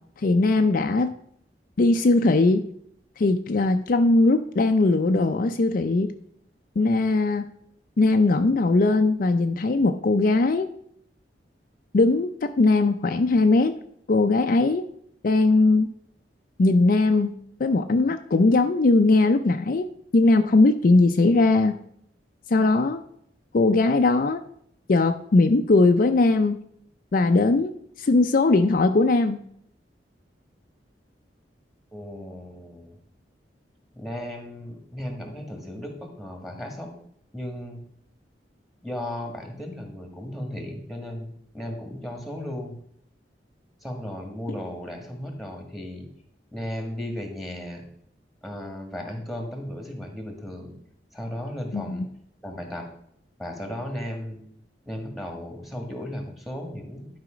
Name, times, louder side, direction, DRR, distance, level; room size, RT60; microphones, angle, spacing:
voice 1, 0.2-1.1 1.8-2.6 3.2-6.1 6.8-7.5 8.0-10.7 11.9-13.7 14.1-14.8 15.2-15.9 16.6-17.3 17.6-19.9 20.1-21.8 22.5-23.0 23.5-24.4 24.9-26.6 27.1-27.7 28.0-29.4 51.7-52.1, left 3 dB, 50° left, 7 dB, 0.4 m, -20 dB
voice 2, 31.9-33.0 33.9-36.9 37.3-37.8 38.8-42.8 43.8-46.1 46.5-47.8 48.4-50.8 51.1-52.0 52.4-52.9 53.4-54.4 54.9-57.1, left 1 dB, ahead, 3 dB, 1.7 m, -35 dB
11.5 x 4.9 x 5.0 m, 0.69 s
head